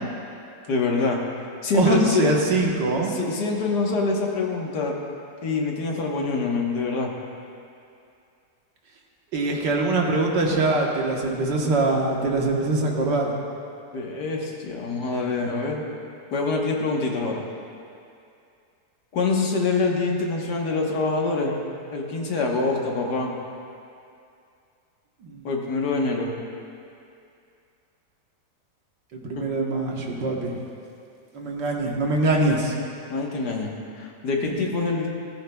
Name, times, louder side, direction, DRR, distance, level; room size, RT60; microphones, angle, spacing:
voice 1, 0.7-1.2 1.6-2.3 3.1-5.0 5.4-7.1 13.9-15.9 16.3-17.4 19.1-21.6 21.9-23.3 25.4-26.3 29.4-29.5 33.1-35.1, left 3 dB, 70° left, 0 dB, 1.9 m, -25 dB
voice 2, 1.7-3.1 9.3-13.3 25.2-25.5 29.1-30.6 31.3-32.7, right 2 dB, 90° right, -1 dB, 2.0 m, -23 dB
16.5 x 14.0 x 2.3 m, 2.5 s
omnidirectional pair, 1.8 m